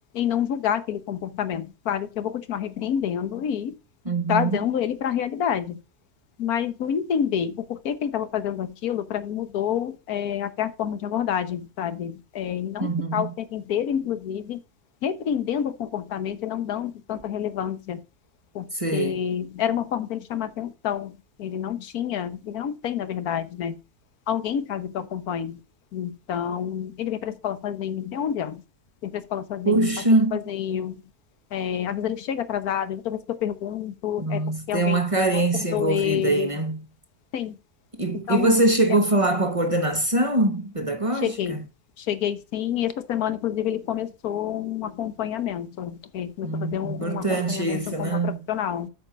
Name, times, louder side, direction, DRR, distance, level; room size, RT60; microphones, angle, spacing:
voice 1, 0.1-3.7 4.3-5.8 6.4-14.6 15.0-18.0 18.5-23.7 24.3-25.6 25.9-28.6 29.0-29.9 30.3-31.0 31.5-34.4 34.7-35.1 35.3-36.5 37.3-37.5 38.3-38.6 41.2-41.6 42.0-48.9, left 9 dB, 85° left, 1.4 m, -28 dB
voice 2, 4.0-4.6 12.8-13.3 18.7-19.2 29.6-30.4 34.2-36.8 38.0-41.6 46.4-48.4, right 2 dB, 25° right, 1.0 m, -23 dB
8.7 x 5.1 x 5.1 m
omnidirectional pair, 1.5 m